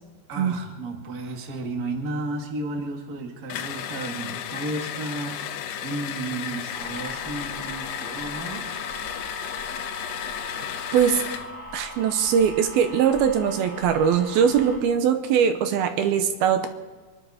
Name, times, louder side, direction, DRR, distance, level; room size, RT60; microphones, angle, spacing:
voice 1, 0.3-8.6, right 2 dB, 40° right, 1 dB, 1.3 m, -33 dB
sound 1, 3.5-11.5, left 9 dB, 75° left, 2.7 m, -34 dB
sound 2, 6.7-14.8, left 1 dB, ahead, 3.4 m, -40 dB
voice 2, 11.7-16.7, right 8 dB, 75° right, 7 dB, 2.4 m, -21 dB
25.5 x 11.5 x 5.0 m, 1.4 s
omnidirectional pair, 5.2 m